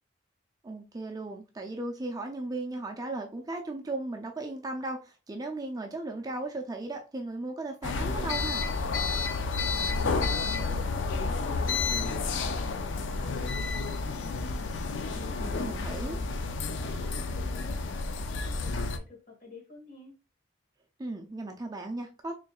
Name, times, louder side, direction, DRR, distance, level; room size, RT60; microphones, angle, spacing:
voice 1, 0.6-8.7 15.4-16.2 21.0-22.3, right 2 dB, 20° right, 0.4 m, -36 dB
sound 1, 7.8-19.0, left 4 dB, 75° left, 0.5 m, -30 dB
voice 2, 9.7-14.4 14.7-20.1, left 2 dB, 45° left, 2.0 m, -50 dB
4.3 x 3.2 x 2.3 m
head